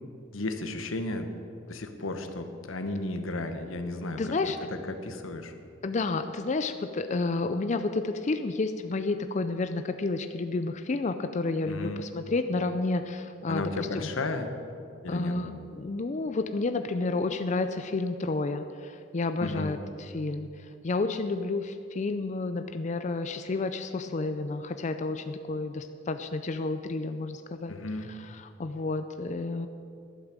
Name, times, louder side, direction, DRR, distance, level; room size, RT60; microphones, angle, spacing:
voice 1, 0.3-1.3 1.7-5.5 11.7-12.1 13.5-14.5 15.0-15.4 19.4-19.8 27.7-28.1, left 2 dB, 90° left, 7 dB, 1.1 m, -34 dB
voice 2, 4.2-4.6 5.8-14.1 15.1-19.8 20.1-20.5 20.8-27.7 28.1-29.7, left 3 dB, 35° left, 9 dB, 0.4 m, -30 dB
11.5 x 8.8 x 7.4 m, 2.5 s
head